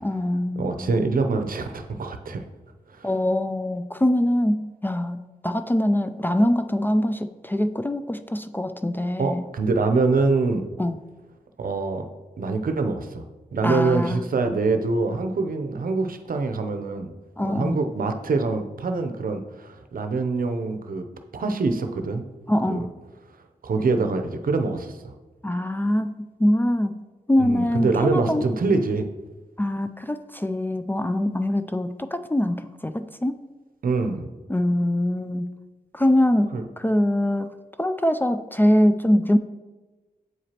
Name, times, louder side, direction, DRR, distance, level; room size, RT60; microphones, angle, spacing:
voice 1, 0.0-1.0 3.0-5.2 5.4-9.4 10.8-10.9 13.6-14.2 17.4-17.8 22.5-22.9 25.4-27.0 27.3-28.4 29.6-33.4 34.5-35.5 35.9-37.5 37.8-39.4, left 1 dB, 15° left, 10 dB, 0.3 m, -23 dB
voice 2, 0.6-2.4 2.9-3.1 9.2-10.7 11.6-12.1 12.4-13.2 13.5-17.1 17.4-21.0 21.3-22.2 22.7-22.9 23.6-25.1 27.4-29.1 33.8-34.3 36.5-36.6, right 3 dB, 65° right, 7 dB, 0.7 m, -24 dB
7.9 x 4.8 x 2.9 m, 1.2 s
cardioid pair, 55°, 16 cm